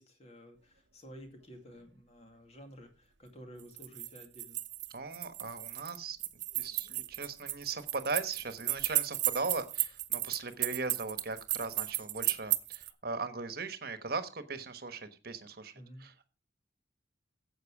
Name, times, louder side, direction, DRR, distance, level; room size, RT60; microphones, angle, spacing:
voice 1, 0.0-4.6 15.7-16.1, equal, 35° left, 5 dB, 2.4 m, -52 dB
sound 1, 3.6-12.9, right 16 dB, 75° right, 0.9 m, -34 dB
voice 2, 4.9-6.2 6.5-15.7 16.0-16.3, right 4 dB, 55° right, 10 dB, 1.3 m, -38 dB
12.5 x 8.1 x 4.8 m, 0.32 s
head